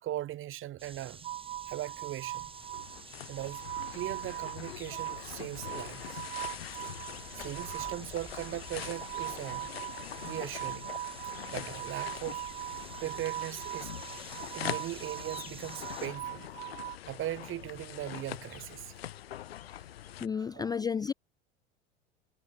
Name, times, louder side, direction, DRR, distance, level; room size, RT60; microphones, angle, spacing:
voice 1, 0.0-1.3 1.7-2.5 3.3-6.2 7.3-9.7 10.2-10.9 11.5-12.4 13.0-14.0 14.5-16.7 17.1-18.9 20.3-20.6, right 14 dB, 40° right, 5.4 m, -39 dB
sound 1, 0.8-16.1, right 4 dB, 15° right, 7.2 m, -50 dB
sound 2, 1.2-17.0, right 14 dB, 65° right, 3.2 m, -41 dB
sound 3, 2.3-20.3, left 12 dB, 70° left, 1.6 m, -43 dB
voice 2, 20.2-21.1, left 6 dB, 15° left, 0.5 m, -32 dB
figure-of-eight pair, 75°, 32 cm